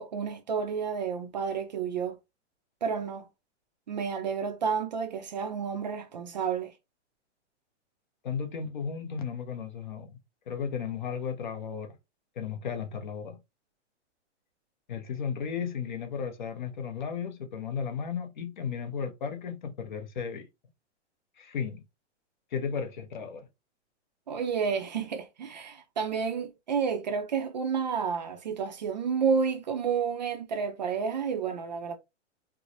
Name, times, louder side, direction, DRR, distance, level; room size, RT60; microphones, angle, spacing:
voice 1, 0.0-2.2 2.8-3.3 3.9-6.7 24.3-32.0, right 6 dB, 40° right, 0.4 m, -30 dB
voice 2, 8.2-10.2 10.5-12.0 12.4-13.4 14.9-20.5 21.4-21.8 22.5-23.5, left 6 dB, 40° left, 0.6 m, -34 dB
4.6 x 2.0 x 2.5 m
hypercardioid pair, 175°, 35 cm